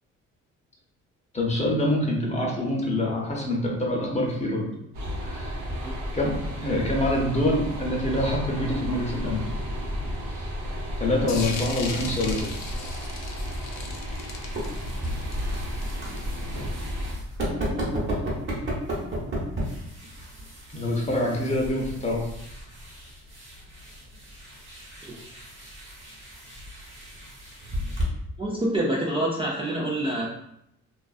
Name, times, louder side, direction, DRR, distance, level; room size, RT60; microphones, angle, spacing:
voice 1, 1.3-4.7 5.2-5.6 6.1-9.4 11.0-12.5 20.7-22.2, left 1 dB, 25° left, -1 dB, 0.7 m, -26 dB
sound 1, 4.9-17.1, equal, 65° right, 0.8 m, -33 dB
sound 2, 11.3-16.6, left 4 dB, 60° left, 0.5 m, -38 dB
sound 3, 14.1-28.0, equal, 40° right, 1.1 m, -34 dB
voice 2, 28.4-30.3, right 1 dB, 20° right, -4 dB, 0.4 m, -26 dB
2.4 x 2.4 x 2.3 m, 0.78 s
cardioid pair, 90°, 30 cm